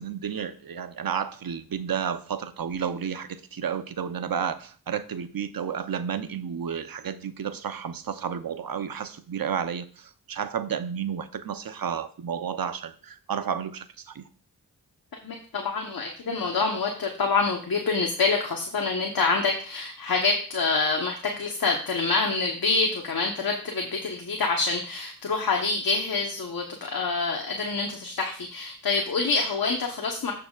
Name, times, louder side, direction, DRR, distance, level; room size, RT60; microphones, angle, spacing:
voice 1, 0.0-14.2, right 7 dB, 65° right, 11 dB, 0.8 m, -31 dB
voice 2, 15.2-30.3, left 4 dB, 65° left, 1 dB, 1.2 m, -26 dB
14.5 x 5.8 x 2.4 m, 0.41 s
cardioid pair, 45°, 37 cm